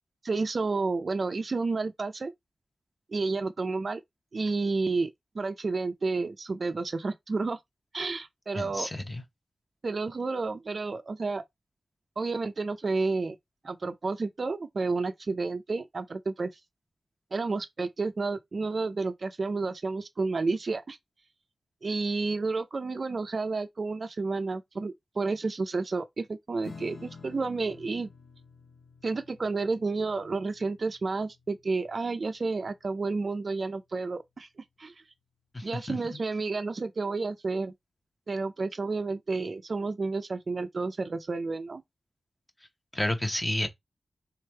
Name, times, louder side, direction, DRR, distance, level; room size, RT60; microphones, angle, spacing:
voice 1, 0.2-2.3 3.1-4.0 4.3-5.1 5.3-7.6 7.9-8.9 9.8-11.4 12.2-13.4 13.6-16.5 17.3-21.0 21.8-28.1 29.0-34.5 34.8-34.9 35.6-37.7 38.3-41.8, right 3 dB, 45° right, 0.4 m, -31 dB
voice 2, 8.5-9.2 35.5-36.2 42.9-43.7, left 1 dB, 15° left, 0.9 m, -31 dB
Strum, 26.6-33.5, left 4 dB, 65° left, 0.7 m, -51 dB
3.5 x 3.4 x 4.4 m
wide cardioid pair, 155°, 0 cm